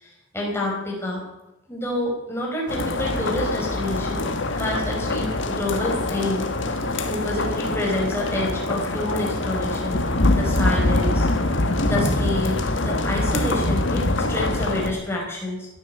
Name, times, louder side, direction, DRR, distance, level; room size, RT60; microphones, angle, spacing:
voice 1, 0.0-1.2 1.7-6.8 7.0-10.0 10.3-11.3 11.9-15.7, left 1 dB, 10° left, -2 dB, 5.0 m, -28 dB
sound 1, 2.7-14.9, left 2 dB, 65° left, 1.8 m, -24 dB
16.0 x 10.5 x 8.3 m, 0.95 s
head